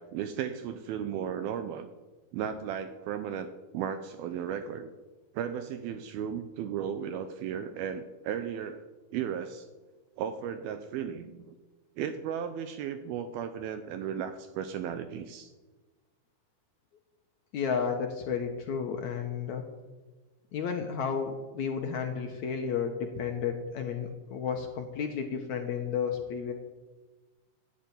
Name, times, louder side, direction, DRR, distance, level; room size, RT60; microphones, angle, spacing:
voice 1, 0.0-1.9 2.3-4.9 5.3-8.8 9.1-9.7 10.2-11.6 12.0-15.5, right 8 dB, 80° right, 10 dB, 2.3 m, -35 dB
voice 2, 17.5-19.6 20.5-26.5, left 6 dB, 75° left, 4 dB, 1.7 m, -32 dB
13.0 x 8.5 x 9.4 m, 1.2 s
omnidirectional pair, 4.9 m